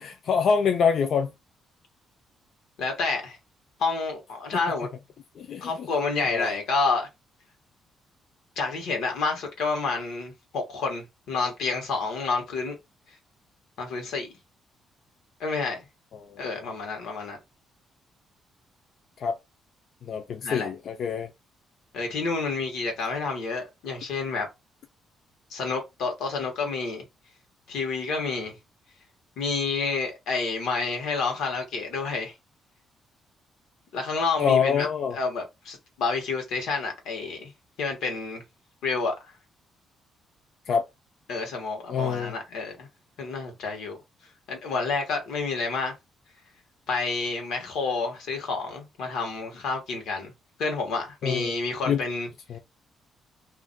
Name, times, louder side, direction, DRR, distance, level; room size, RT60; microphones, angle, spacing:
voice 1, 0.0-1.3 5.4-5.9 6.3-6.5 16.1-16.7 19.2-19.4 20.0-21.3 34.4-35.2 40.7-40.8 41.9-42.3 51.2-51.5 51.9-52.0 52.5-52.6, left 6 dB, 45° left, 0.3 m, -26 dB
voice 2, 2.8-3.4 3.8-4.9 5.6-7.1 8.6-12.7 13.8-14.3 15.4-15.8 16.4-17.4 20.4-20.7 21.9-24.5 25.5-27.0 27.7-28.5 29.4-32.3 33.9-34.9 35.1-37.5 37.8-38.4 38.8-39.1 41.3-42.9 43.2-44.0 44.5-45.9 46.9-50.3 50.6-52.3, left 4 dB, 85° left, 1.0 m, -29 dB
2.4 x 2.1 x 3.8 m
cardioid pair, 175°, 0 cm